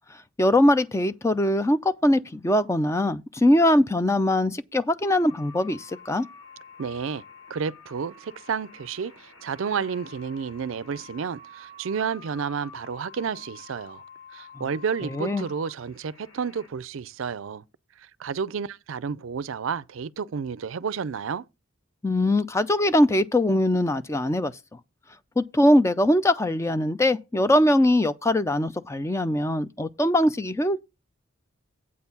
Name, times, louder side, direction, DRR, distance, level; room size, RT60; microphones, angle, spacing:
voice 1, 0.4-6.2 14.6-14.7 15.0-15.5 22.0-24.5 25.4-30.8, left 1 dB, 15° left, 0.4 m, -22 dB
sound 1, 5.0-16.7, left 4 dB, 75° left, 4.4 m, -48 dB
voice 2, 6.8-7.2 7.5-14.0 14.3-17.6 18.2-21.4, right 6 dB, 70° right, 0.4 m, -31 dB
8.4 x 4.5 x 6.9 m
head